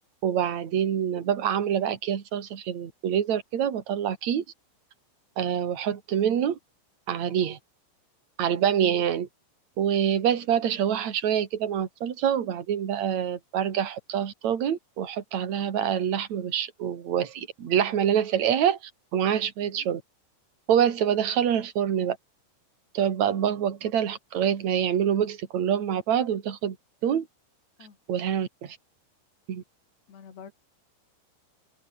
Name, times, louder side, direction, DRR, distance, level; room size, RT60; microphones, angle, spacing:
voice 1, 0.2-4.4 5.4-6.6 7.1-7.6 8.4-9.3 9.8-18.8 19.1-20.0 20.7-22.2 22.9-26.8 27.0-27.3 28.1-28.8 29.5-29.6, right 9 dB, 45° right, 2.9 m, -26 dB
voice 2, 30.1-30.5, left 7 dB, 60° left, 6.2 m, -46 dB
omnidirectional pair, 5.8 m